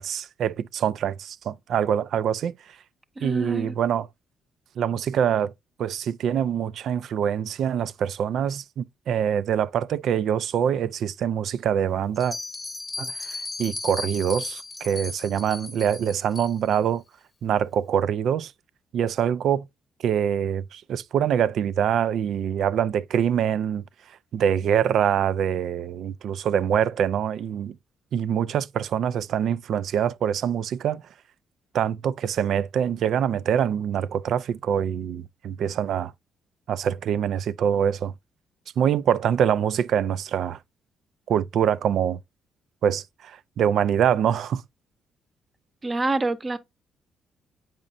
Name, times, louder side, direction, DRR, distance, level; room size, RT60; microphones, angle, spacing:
voice 1, 0.0-2.5 3.2-4.1 4.8-5.5 5.8-12.4 13.0-17.0 17.4-18.5 18.9-19.6 20.0-23.8 24.3-27.7 28.1-31.0 31.7-36.1 36.7-38.1 38.8-40.6 41.3-42.2 42.8-44.6, right 8 dB, 70° right, 0.3 m, -24 dB
voice 2, 3.2-3.8 45.8-46.6, right 2 dB, 25° right, 0.7 m, -26 dB
Bell, 12.1-16.8, left 3 dB, 25° left, 0.8 m, -36 dB
7.4 x 5.1 x 2.5 m
cardioid pair, 90°, 0 cm